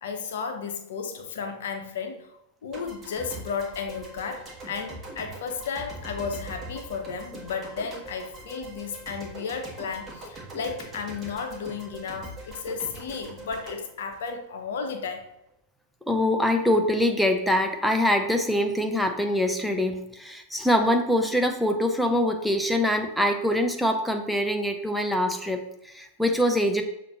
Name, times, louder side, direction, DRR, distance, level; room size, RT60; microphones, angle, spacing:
voice 1, 0.0-2.3 2.6-15.3, left 5 dB, 60° left, 5 dB, 0.6 m, -33 dB
sound 1, 2.7-14.9, right 1 dB, 20° right, 1.4 m, -42 dB
voice 2, 16.1-26.8, left 1 dB, ahead, 4 dB, 0.5 m, -24 dB
6.6 x 2.5 x 3.0 m, 0.83 s
figure-of-eight pair, 90°, 0 cm